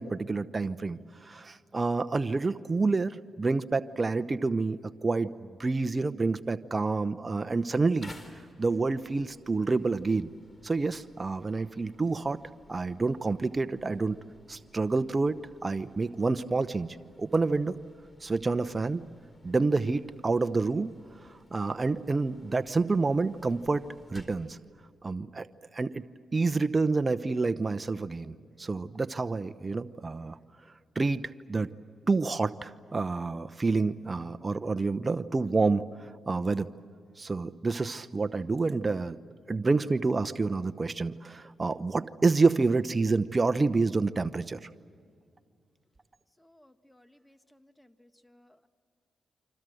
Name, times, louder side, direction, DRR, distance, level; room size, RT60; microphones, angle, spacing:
voice 1, 0.0-5.3 5.6-8.1 8.6-10.3 10.6-12.4 12.7-14.2 14.5-17.7 18.2-19.0 19.4-20.9 21.5-23.8 24.1-24.6 25.0-25.5 25.7-26.0 26.3-30.4 30.9-31.7 32.1-36.7 37.2-39.2 39.5-44.7, right 3 dB, 35° right, 11 dB, 0.9 m, -28 dB
sound 1, 8.0-24.5, left 2 dB, 30° left, 4.1 m, -56 dB
voice 2, 46.4-48.7, left 1 dB, 10° left, 9 dB, 1.5 m, -61 dB
28.5 x 26.0 x 7.9 m, 2.2 s
cardioid pair, 55°, 0 cm